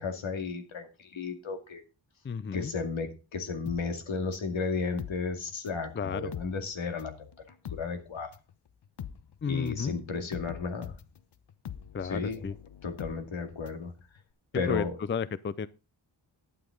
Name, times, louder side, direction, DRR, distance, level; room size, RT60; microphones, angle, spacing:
voice 1, 0.0-1.8 2.5-7.3 7.7-8.3 9.5-11.0 12.0-12.5 12.8-13.9 14.5-15.0, left 4 dB, 80° left, 2.3 m, -34 dB
voice 2, 2.2-2.7 5.9-6.3 9.4-10.0 11.9-12.5 14.5-15.7, left 6 dB, 25° left, 0.5 m, -32 dB
sound 1, 3.7-5.9 6.2-13.9 14.2-14.3, left 9 dB, 60° left, 0.9 m, -43 dB
11.5 x 9.3 x 3.9 m
wide cardioid pair, 100°, 47 cm